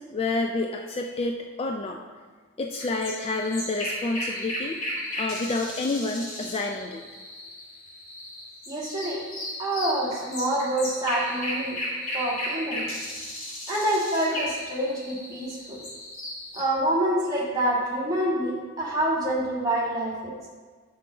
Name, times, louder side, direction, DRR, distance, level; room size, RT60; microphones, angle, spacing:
voice 1, 0.0-2.0 2.6-4.8 5.2-7.0, left 2 dB, 30° left, 2 dB, 0.3 m, -29 dB
sound 1, 2.7-16.6, left 1 dB, 85° left, 2.4 m, -35 dB
voice 2, 8.7-9.2 9.6-11.8 12.1-12.9 13.7-15.8 16.5-20.3, right 1 dB, 20° right, -5 dB, 1.6 m, -27 dB
6.0 x 5.9 x 4.8 m, 1.5 s
head